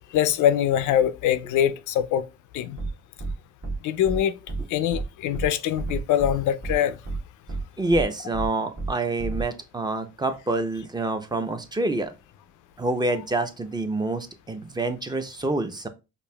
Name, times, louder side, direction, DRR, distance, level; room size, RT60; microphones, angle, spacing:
voice 1, 0.1-2.2 2.5-2.8 3.8-4.3 4.7-7.0, left 10 dB, 80° left, 0.5 m, -23 dB
sound 1, 2.8-2.9 3.2-3.3 3.6-3.8 4.0-4.2 4.5-4.6 4.9-5.0 5.3-5.5 5.8-6.3 6.6-6.7 7.0-7.2 7.5-7.6 7.9-8.0 8.3-8.5 8.8-8.9 9.2-9.4, right 3 dB, 40° right, 1.1 m, -30 dB
voice 2, 7.8-12.1 12.8-15.9, right 2 dB, 15° right, 0.5 m, -27 dB
5.1 x 2.4 x 2.2 m
cardioid pair, 90°, 30 cm